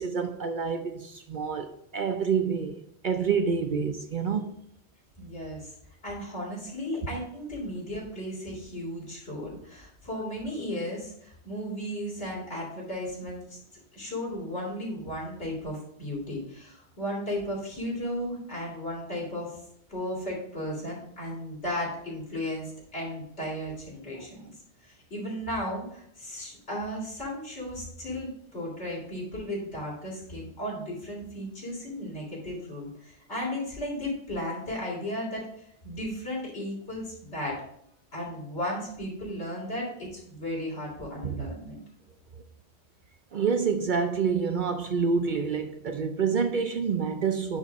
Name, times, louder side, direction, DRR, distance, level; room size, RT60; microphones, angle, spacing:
voice 1, 0.0-4.5 41.2-41.5 43.3-47.6, right 6 dB, 55° right, 0.7 m, -28 dB
voice 2, 5.2-5.7 6.0-13.6 13.9-19.5 19.9-24.5 24.8-35.5 35.8-37.6 38.1-41.8, left 1 dB, 75° left, 3.6 m, -35 dB
10.5 x 3.7 x 4.1 m
omnidirectional pair, 1.2 m